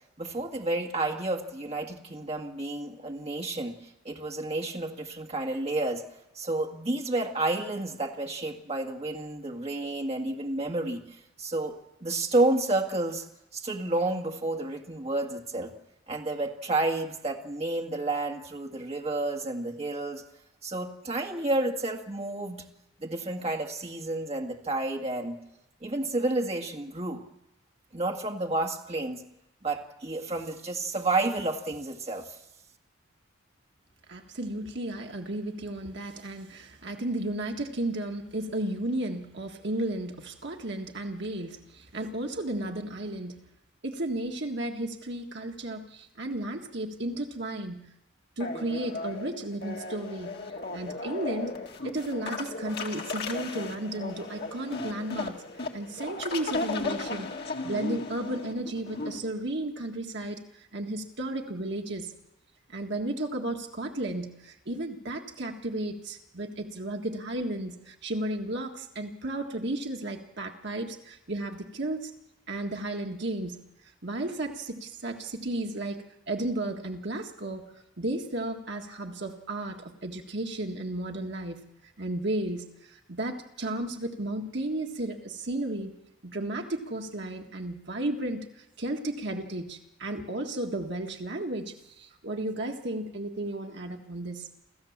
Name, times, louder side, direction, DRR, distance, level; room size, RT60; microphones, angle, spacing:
voice 1, 0.2-3.8 4.1-6.0 6.4-11.0 11.4-11.7 12.0-13.2 13.5-15.7 16.1-20.2 20.6-22.6 23.0-25.4 25.8-27.2 27.9-29.2 29.6-32.3, right 2 dB, 30° right, 2 dB, 1.8 m, -30 dB
voice 2, 34.1-43.4 43.8-47.8 48.4-50.3 50.7-51.5 51.8-55.4 55.7-57.3 57.6-62.1 62.7-72.1 72.5-73.6 74.0-77.6 78.0-81.6 82.0-85.9 86.2-88.5 88.8-94.5, right 1 dB, 55° right, 3 dB, 1.7 m, -33 dB
sound 1, 48.4-59.2, left 3 dB, 50° left, 2.0 m, -36 dB
27.5 x 15.0 x 7.3 m, 0.90 s
head